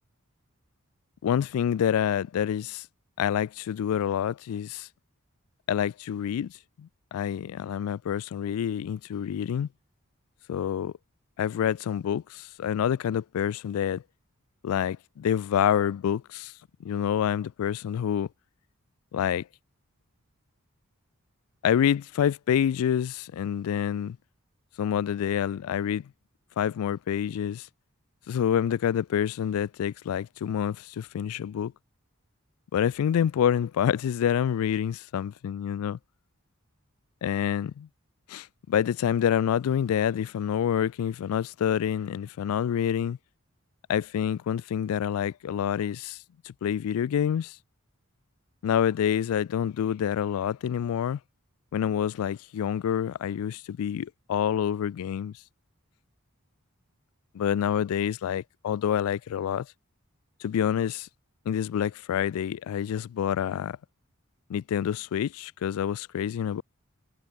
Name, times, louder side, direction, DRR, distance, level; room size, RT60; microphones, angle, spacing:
voice 1, 1.2-2.9 3.2-4.9 5.7-6.5 6.8-9.7 10.5-10.9 11.4-14.0 14.6-16.5 16.8-18.3 19.1-19.4 21.6-24.2 24.8-26.1 26.6-27.7 28.3-31.7 32.7-36.0 37.2-37.9 38.3-43.2 43.9-46.2 46.5-47.6 48.6-51.2 51.7-55.3 57.3-59.7 60.4-61.1 61.5-63.8 64.5-66.6, left 9 dB, 75° left, 0.3 m, -27 dB
head